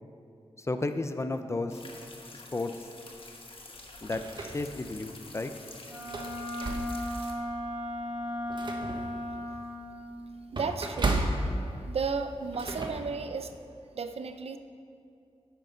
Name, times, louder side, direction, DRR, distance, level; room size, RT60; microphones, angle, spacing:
voice 1, 0.6-1.8 2.5-2.7 4.0-5.5, left 2 dB, 25° left, 9 dB, 0.5 m, -33 dB
sound 1, 1.7-7.3, left 3 dB, 55° left, 1.2 m, -48 dB
sound 2, 3.7-5.0 5.5-5.6 6.0-7.2 7.7-7.8 8.2-12.9, right 2 dB, 45° right, 1.1 m, -34 dB
Wind instrument woodwind instrument, 5.9-9.9, left 1 dB, 10° right, 1.9 m, -35 dB
voice 2, 10.5-11.3 11.9-13.6 13.9-14.6, right 5 dB, 70° right, 8 dB, 0.6 m, -33 dB
10.5 x 9.1 x 3.9 m, 2.5 s
wide cardioid pair, 105°, 11 cm